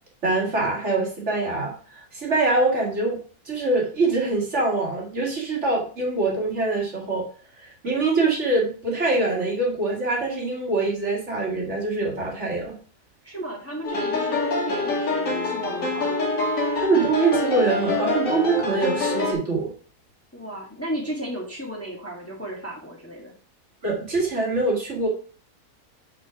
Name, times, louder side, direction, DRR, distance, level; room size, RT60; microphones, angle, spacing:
voice 1, 0.2-3.2 3.5-7.2 7.6-12.8 16.8-19.7 23.8-25.1, right 3 dB, 45° right, -2 dB, 2.3 m, -24 dB
voice 2, 13.2-16.1 20.3-23.3, equal, 10° left, -2 dB, 1.6 m, -34 dB
sound 1, 13.8-19.3, left 3 dB, 55° left, 2.1 m, -25 dB
5.9 x 5.8 x 4.7 m, 0.42 s
omnidirectional pair, 1.7 m